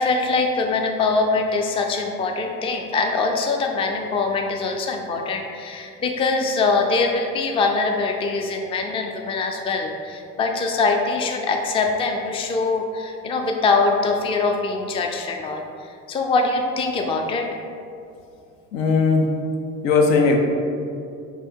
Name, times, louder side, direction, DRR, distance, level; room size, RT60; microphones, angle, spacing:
voice 1, 0.0-17.5, left 3 dB, 15° left, 3 dB, 0.3 m, -23 dB
voice 2, 18.7-19.3 19.8-20.4, left 4 dB, 75° left, 2 dB, 0.6 m, -17 dB
3.4 x 2.7 x 4.3 m, 2.5 s
hypercardioid pair, 65°, 39 cm